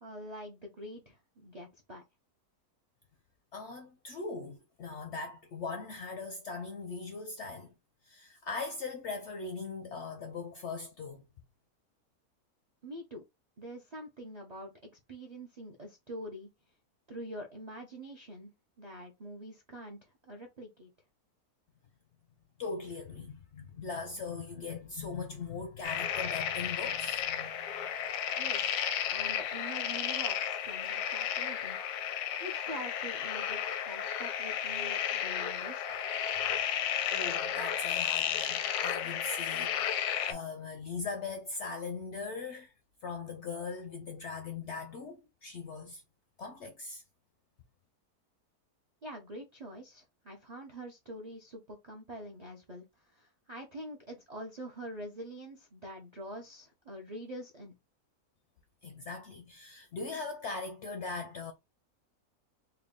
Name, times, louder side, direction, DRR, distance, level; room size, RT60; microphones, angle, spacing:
voice 1, 0.0-2.0 12.8-13.2 13.6-16.5 17.1-18.5 18.8-20.9 28.4-31.8 32.4-36.0 49.0-57.7, equal, 50° right, 0.4 m, -45 dB
voice 2, 3.5-7.7 8.0-11.2 22.6-27.9 37.1-42.7 43.0-46.0 46.4-47.0 58.8-61.5, left 4 dB, 70° left, 0.7 m, -40 dB
sound 1, 25.8-40.3, left 9 dB, 85° left, 1.1 m, -33 dB
3.5 x 2.2 x 3.5 m
omnidirectional pair, 1.6 m